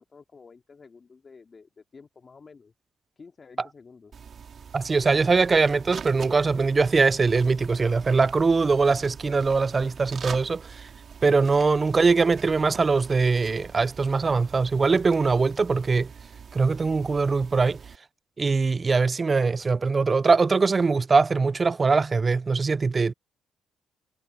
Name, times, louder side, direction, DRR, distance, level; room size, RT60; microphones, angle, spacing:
voice 1, 0.0-2.7 3.2-4.1, left 5 dB, 35° left, 2.5 m, -50 dB
sound 1, 4.1-18.0, right 7 dB, 50° right, 2.4 m, -43 dB
voice 2, 4.7-10.9 11.2-16.1 16.5-17.8 18.4-23.1, right 4 dB, 30° right, 0.4 m, -22 dB
cardioid pair, 90°, 0 cm